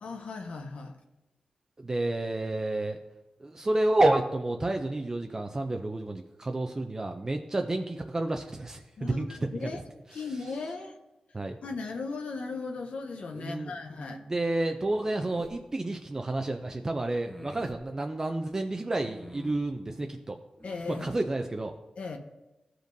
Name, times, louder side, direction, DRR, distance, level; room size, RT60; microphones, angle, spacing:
voice 1, 0.0-1.0 9.0-9.8 10.1-11.0 11.6-14.2 20.6-21.1 22.0-22.2, left 4 dB, 75° left, 5 dB, 0.8 m, -37 dB
voice 2, 1.8-3.0 3.4-9.8 10.1-10.4 11.3-11.6 13.3-20.4 21.0-21.7, right 2 dB, 25° right, 4 dB, 0.4 m, -30 dB
sound 1, 14.8-15.6 17.1-17.8 18.9-19.7 20.6-21.2, equal, 10° left, 0.8 m, -46 dB
15.0 x 5.1 x 2.6 m, 1.0 s
wide cardioid pair, 130°, 2 cm